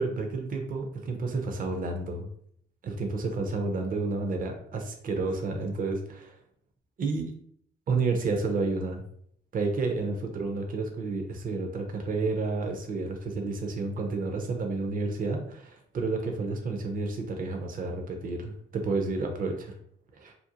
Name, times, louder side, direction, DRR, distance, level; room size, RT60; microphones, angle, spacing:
voice 1, 0.0-2.3 2.8-6.4 7.0-7.3 7.9-9.0 9.5-19.7 20.1-20.3, right 3 dB, 45° right, 3 dB, 0.6 m, -30 dB
2.5 x 2.0 x 2.7 m, 0.64 s
cardioid pair, 90°, 20 cm